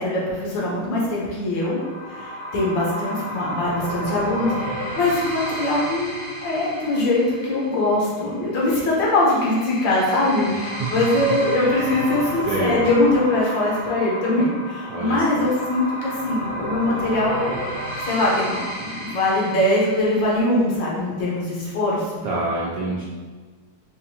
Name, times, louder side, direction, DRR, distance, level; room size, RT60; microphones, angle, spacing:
voice 1, 0.0-1.8 2.1-17.6 18.1-22.1, left 2 dB, 65° left, -5 dB, 1.4 m, -22 dB
sound 1, 1.7-20.3, equal, 20° left, 0.6 m, -32 dB
voice 2, 10.8-11.3 12.5-12.8 14.9-15.4 22.2-23.0, right 2 dB, 75° right, -6 dB, 1.0 m, -26 dB
4.5 x 2.5 x 2.7 m, 1.4 s
omnidirectional pair, 2.4 m